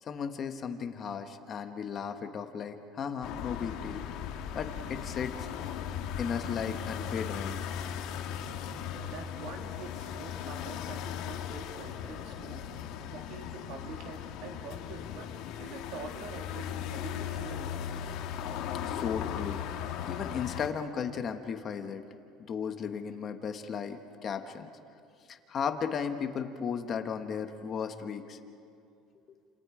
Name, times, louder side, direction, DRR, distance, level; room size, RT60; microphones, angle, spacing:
voice 1, 0.0-4.0 4.5-5.5 6.2-7.6 18.8-19.6 20.0-22.0 22.4-24.7 25.3-28.4, left 7 dB, 30° left, 7 dB, 1.3 m, -35 dB
sound 1, 3.2-20.7, left 9 dB, 60° left, 1.8 m, -37 dB
voice 2, 9.1-12.8 13.1-17.8, right 4 dB, 60° right, 2 dB, 3.2 m, -45 dB
30.0 x 28.5 x 5.0 m, 2.5 s
cardioid pair, 155°, 0 cm